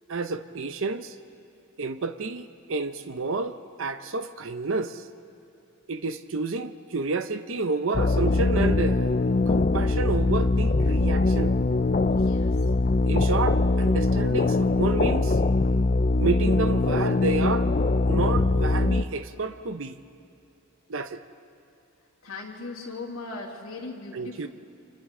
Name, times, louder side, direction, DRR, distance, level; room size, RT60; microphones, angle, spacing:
voice 1, 0.1-1.2 1.8-5.1 5.9-9.1 9.5-11.6 13.0-15.4 16.2-17.7 18.1-20.0 20.9-21.2 24.1-24.5, right 3 dB, 70° right, 10 dB, 0.7 m, -30 dB
sound 1, 7.9-19.0, left 2 dB, 35° left, 0.4 m, -22 dB
voice 2, 12.1-12.5 22.2-24.5, left 3 dB, 85° left, -4 dB, 2.7 m, -38 dB
28.5 x 26.5 x 3.8 m, 2.6 s
head